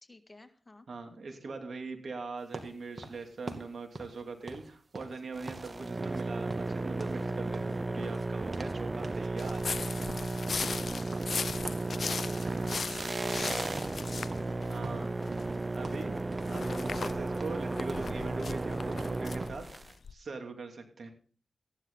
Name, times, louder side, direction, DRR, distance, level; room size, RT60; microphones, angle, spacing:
voice 1, 0.0-0.9 5.8-6.0 11.9-14.0, left 2 dB, 25° left, 7 dB, 1.8 m, -53 dB
voice 2, 0.9-9.6 14.7-16.2 16.5-19.7 20.1-21.1, right 4 dB, 70° right, 4 dB, 2.7 m, -42 dB
sound 1, 2.5-5.7 6.0-6.2 6.5-8.8 9.0-9.3 9.6-12.5 12.7-13.5 13.8-14.0 14.3-15.6 15.8-16.6 16.9-19.6, right 2 dB, 55° right, 2.4 m, -45 dB
sound 2, 5.3-19.9, right 2 dB, 40° right, 0.5 m, -34 dB
sound 3, 9.4-15.5 15.8-20.1, left 5 dB, 70° left, 0.6 m, -38 dB
15.0 x 10.5 x 4.0 m, 0.42 s
cardioid pair, 45°, 0 cm